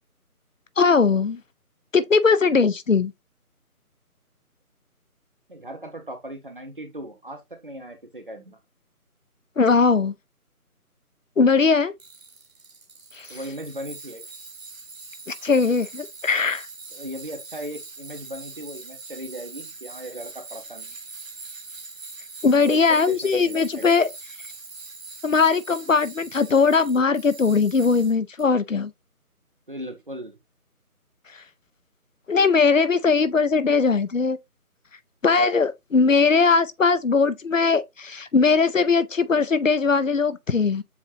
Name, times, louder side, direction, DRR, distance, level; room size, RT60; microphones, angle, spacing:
voice 1, 0.8-1.4 1.9-3.1 9.6-10.1 11.4-11.9 13.2-13.3 15.3-16.7 22.4-24.1 25.2-28.9 32.3-34.4 35.2-40.8, left 4 dB, 60° left, 0.6 m, -20 dB
voice 2, 5.5-8.6 13.3-14.2 16.9-21.0 22.6-24.0 29.7-30.4, right 1 dB, 35° right, 0.9 m, -37 dB
Tools, 12.0-28.5, right 3 dB, 60° right, 1.0 m, -42 dB
7.1 x 2.6 x 2.7 m
figure-of-eight pair, 160°, 45 cm